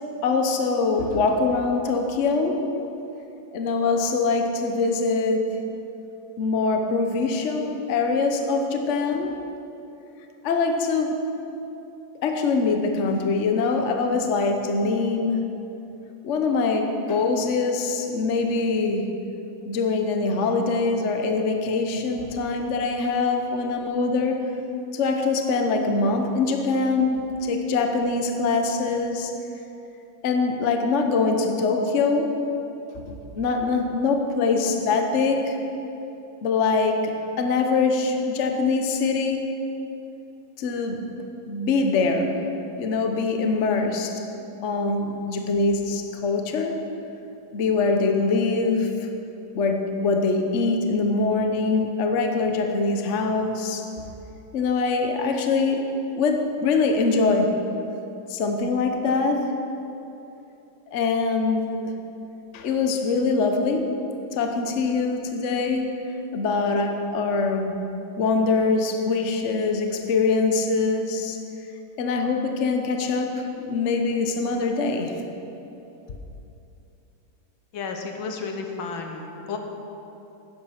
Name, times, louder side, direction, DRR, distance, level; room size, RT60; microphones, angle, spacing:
voice 1, 0.2-2.7 3.5-5.6 6.4-9.4 10.4-11.2 12.2-15.4 16.2-19.1 19.6-24.6 24.9-29.3 30.2-32.4 32.9-35.6 36.4-39.6 40.6-41.1 41.5-42.4 42.8-44.2 44.6-46.8 47.5-49.1 49.5-53.9 54.5-57.6 58.3-59.6 60.9-61.8 62.5-64.0 64.3-67.8 68.2-71.4 72.0-75.2, left 4 dB, 50° left, 5 dB, 0.9 m, -23 dB
voice 2, 77.7-79.6, left 4 dB, 75° left, 4 dB, 1.9 m, -32 dB
11.5 x 10.5 x 5.8 m, 2.9 s
omnidirectional pair, 2.2 m